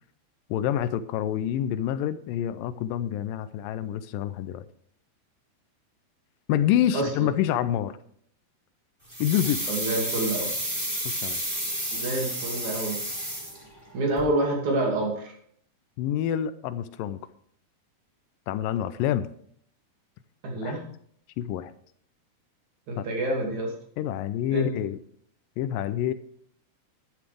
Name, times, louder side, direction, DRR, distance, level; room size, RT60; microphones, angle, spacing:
voice 1, 0.5-4.7 6.5-8.0 9.2-9.7 11.1-11.4 16.0-17.2 18.5-19.3 20.6-20.7 21.4-21.7 23.0-23.1 24.0-25.0 25.6-26.1, left 11 dB, 80° left, 13 dB, 2.2 m, -27 dB
voice 2, 6.9-7.3 9.7-10.5 11.9-13.0 13.9-15.3 20.4-20.8 22.9-23.7 24.5-24.7, right 2 dB, 55° right, 0 dB, 3.6 m, -27 dB
sound 1, 9.1-13.9 14.2-14.3, right 1 dB, 10° right, 3.4 m, -31 dB
11.5 x 11.0 x 3.4 m, 0.63 s
omnidirectional pair, 4.2 m